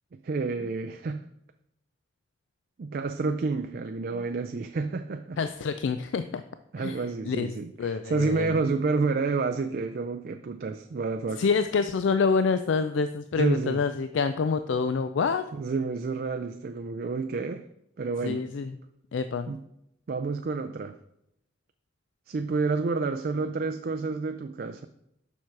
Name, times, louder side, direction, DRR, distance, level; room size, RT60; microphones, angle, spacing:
voice 1, 0.2-1.2 2.8-5.4 6.7-11.4 13.4-13.8 15.5-17.6 18.0-18.4 19.5-19.6 20.1-21.0 22.3-24.9, right 4 dB, 50° right, 7 dB, 0.4 m, -29 dB
voice 2, 5.4-6.4 6.8-7.5 7.8-8.6 11.4-15.4 18.2-18.8 19.1-19.5, left 5 dB, 80° left, 11 dB, 0.4 m, -27 dB
7.1 x 6.0 x 4.6 m, 0.79 s
head